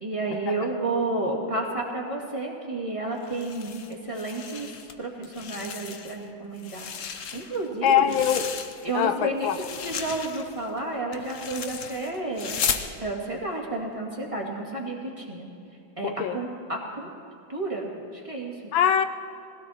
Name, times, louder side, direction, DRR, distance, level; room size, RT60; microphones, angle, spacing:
voice 1, 0.0-4.7 5.0-8.2 8.8-12.5 13.0-15.5 16.0-17.1 17.5-18.7, right 2 dB, 15° right, -2 dB, 1.9 m, -31 dB
sound 1, 3.2-4.9 5.2-6.2 6.6-9.1 9.4-12.9, left 7 dB, 55° left, 0.9 m, -35 dB
voice 2, 7.8-8.5 8.9-9.6 16.0-16.4 18.7-19.1, left 9 dB, 80° left, 10 dB, 1.4 m, -22 dB
20.5 x 16.5 x 4.3 m, 2.7 s
omnidirectional pair, 2.1 m